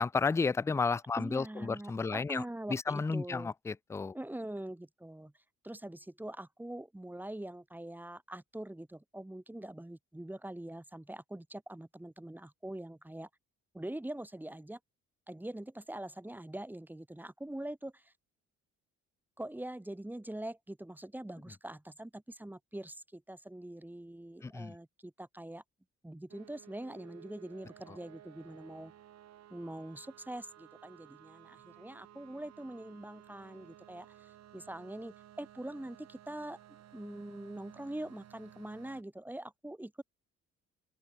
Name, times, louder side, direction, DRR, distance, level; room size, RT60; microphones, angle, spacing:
voice 1, 0.0-4.2 24.4-24.8 27.9-28.0, left 4 dB, 10° left, 0.3 m, -32 dB
voice 2, 1.2-3.5 4.1-5.3 5.6-13.3 13.7-14.8 15.3-18.1 19.4-25.6 26.0-28.9 29.5-36.6 36.9-40.0, right 1 dB, 5° right, 1.2 m, -43 dB
sound 1, 26.3-39.0, right 11 dB, 60° right, 1.0 m, -56 dB
open air
cardioid pair, 90°, 30 cm